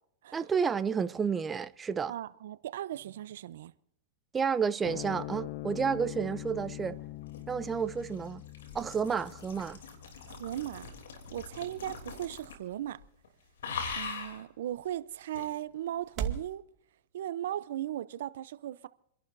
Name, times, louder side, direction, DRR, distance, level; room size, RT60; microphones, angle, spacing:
voice 1, 0.3-2.1 4.3-7.0 7.5-8.4 8.7-9.8, right 6 dB, 20° right, 0.6 m, -30 dB
voice 2, 2.1-3.7 10.3-10.9 11.3-13.0 13.9-16.6 17.1-18.9, right 12 dB, 75° right, 0.7 m, -37 dB
sound 1, 4.8-11.5, left 18 dB, 55° left, 0.5 m, -43 dB
sound 2, 7.0-12.7 13.0-13.3 13.6-14.4 15.3-15.5, left 5 dB, 80° left, 3.2 m, -42 dB
sound 3, 10.3-16.5, right 8 dB, 40° right, 2.2 m, -44 dB
30.0 x 11.5 x 2.7 m
hypercardioid pair, 120°, 0 cm